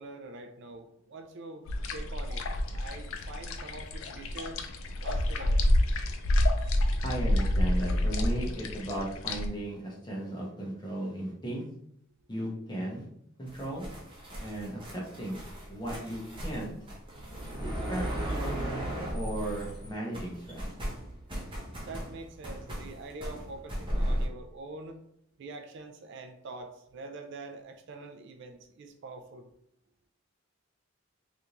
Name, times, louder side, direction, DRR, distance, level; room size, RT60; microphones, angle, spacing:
voice 1, 0.0-4.6 5.0-5.6 21.8-25.0 25.4-29.5, right 2 dB, 60° right, 5 dB, 0.4 m, -45 dB
sound 1, 1.7-9.5, left 1 dB, 90° left, 0.4 m, -28 dB
voice 2, 7.0-11.6 12.3-13.1 13.4-13.8 14.4-15.4 15.7-16.7 17.6-18.0 18.4-18.9 19.1-20.7, right 1 dB, 20° left, -3 dB, 0.8 m, -36 dB
sound 2, 13.5-19.9 20.1-24.3, equal, 25° right, 0.8 m, -36 dB
3.4 x 2.6 x 2.9 m, 0.73 s
head